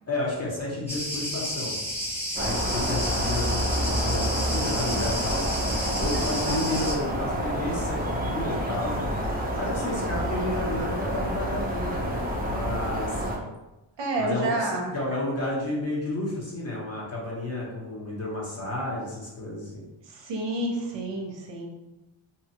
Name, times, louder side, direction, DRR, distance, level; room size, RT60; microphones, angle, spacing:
voice 1, 0.1-1.7 2.4-5.4 6.0-9.1 9.5-13.2 14.2-19.8, left 2 dB, 30° left, -4 dB, 1.0 m, -31 dB
Cricket, 0.9-6.9, equal, 5° left, 0.9 m, -31 dB
sound 1, 2.4-13.4, equal, 20° right, 0.5 m, -28 dB
voice 2, 6.1-6.6 14.0-14.9 20.2-21.7, right 2 dB, 60° right, 0 dB, 0.7 m, -29 dB
2.8 x 2.3 x 2.8 m, 0.99 s
cardioid pair, 95°, 49 cm